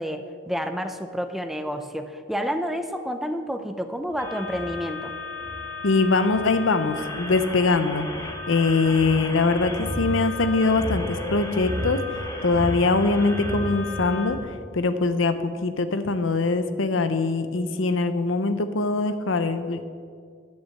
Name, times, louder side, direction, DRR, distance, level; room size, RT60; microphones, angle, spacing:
voice 1, 0.0-5.1, equal, ahead, 7 dB, 0.5 m, -29 dB
sound 1, 4.0-14.4, equal, 35° left, 2.0 m, -35 dB
sound 2, 4.2-14.2, left 2 dB, 20° left, 1.4 m, -36 dB
voice 2, 5.8-14.4 14.7-19.8, left 3 dB, 75° left, 10 dB, 0.7 m, -23 dB
11.0 x 6.5 x 7.6 m, 2.1 s
head